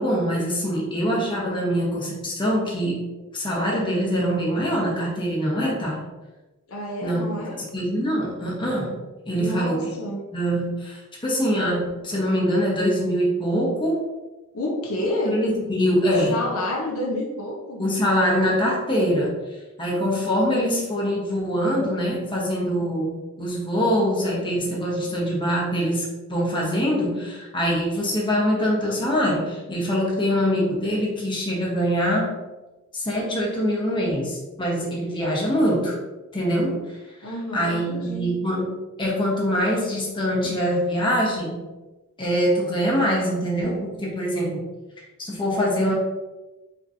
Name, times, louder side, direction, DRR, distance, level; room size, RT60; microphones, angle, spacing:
voice 1, 0.0-3.1 3.3-6.0 7.0-8.9 9.3-9.8 10.3-14.0 15.3-16.4 17.8-19.3 19.8-32.3 32.9-35.9 36.3-36.8 37.5-41.7 42.2-44.7 45.2-45.9, equal, 20° left, -4 dB, 1.0 m, -24 dB
voice 2, 6.7-7.6 9.4-10.3 14.5-15.4 16.3-17.8 37.2-38.3, left 1 dB, 80° left, 0 dB, 0.8 m, -29 dB
5.2 x 3.0 x 2.7 m, 1.1 s
head